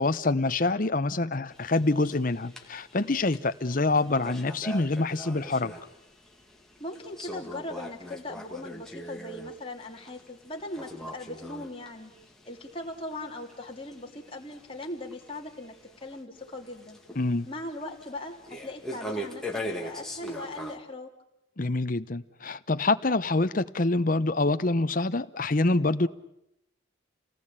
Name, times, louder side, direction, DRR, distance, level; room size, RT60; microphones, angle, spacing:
voice 1, 0.0-5.7 17.2-17.5 21.6-26.1, left 2 dB, 40° left, 0.9 m, -26 dB
sound 1, 1.5-20.8, equal, ahead, 2.1 m, -42 dB
voice 2, 6.8-12.1 12.5-15.7 16.0-17.0 17.5-21.1, left 1 dB, 25° left, 2.9 m, -39 dB
28.5 x 19.0 x 8.9 m
head